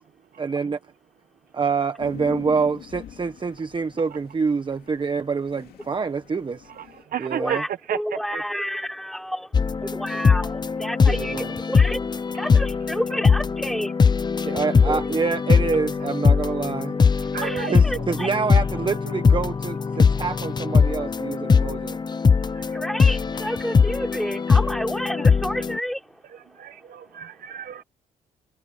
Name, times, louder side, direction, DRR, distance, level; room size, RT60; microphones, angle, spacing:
voice 1, 0.4-0.8 1.5-6.7 7.2-7.6 11.1-11.5 14.4-17.0 17.7-22.0, right 5 dB, 30° right, 1.2 m, -26 dB
sound 1, 2.0-7.0, left 10 dB, 80° left, 2.8 m, -43 dB
voice 2, 6.8-7.6 7.9-8.4 17.2-18.0 22.5-22.8 26.5-27.8, right 9 dB, 65° right, 1.1 m, -32 dB
voice 3, 7.4-14.1 14.9-15.1 16.9-17.0 17.3-18.3 21.6-27.2 27.5-27.8, equal, ahead, 3.7 m, -31 dB
sound 2, 9.5-25.8, left 5 dB, 30° left, 0.7 m, -21 dB
cardioid pair, 115°, 16 cm